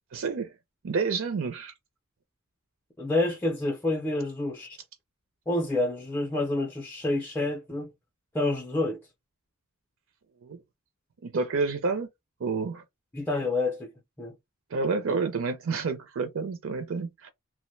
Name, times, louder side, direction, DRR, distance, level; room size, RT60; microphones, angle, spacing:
voice 1, 0.1-0.5 0.8-1.7 10.4-10.6 11.2-12.1 12.4-12.8 14.7-17.3, right 4 dB, 65° right, 0.5 m, -29 dB
voice 2, 3.0-4.8 5.5-7.9 8.3-9.0 13.1-13.9 14.2-14.3, left 2 dB, 10° left, 0.5 m, -28 dB
2.9 x 2.1 x 3.1 m
head